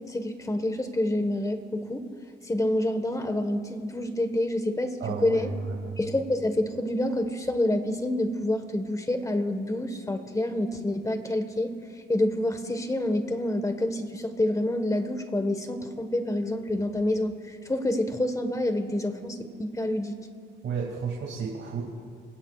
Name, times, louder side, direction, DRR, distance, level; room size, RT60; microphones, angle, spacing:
voice 1, 0.1-2.0 2.4-5.5 6.0-11.7 12.1-20.2, left 1 dB, 15° left, 8 dB, 1.5 m, -27 dB
voice 2, 5.0-6.0 20.6-21.8, right 5 dB, 65° right, -2 dB, 2.5 m, -32 dB
28.0 x 17.0 x 2.5 m, 2.1 s
cardioid pair, 90°, 20 cm